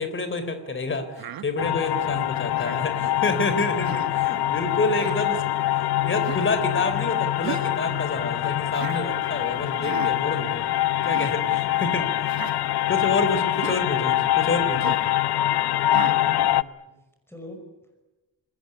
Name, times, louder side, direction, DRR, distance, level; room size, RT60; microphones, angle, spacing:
voice 1, 0.0-5.4 5.8-10.7 11.0-12.3 12.9-15.0, left 3 dB, 30° left, 10 dB, 3.5 m, -28 dB
Human voice, 1.2-1.5 2.6-2.9 3.8-4.1 5.0-5.2 6.2-6.5 7.4-7.8 8.7-9.0 9.8-10.1 11.0-11.3 12.3-12.6 13.5-13.8 14.8-15.1 15.9-16.2, right 10 dB, 65° right, 1.5 m, -36 dB
sound 1, 1.6-16.6, left 13 dB, 80° left, 0.9 m, -24 dB
voice 2, 16.0-17.0 17.3-17.6, left 1 dB, 5° left, 4 dB, 5.7 m, -44 dB
27.5 x 20.5 x 9.8 m, 1.0 s
wide cardioid pair, 175°, 38 cm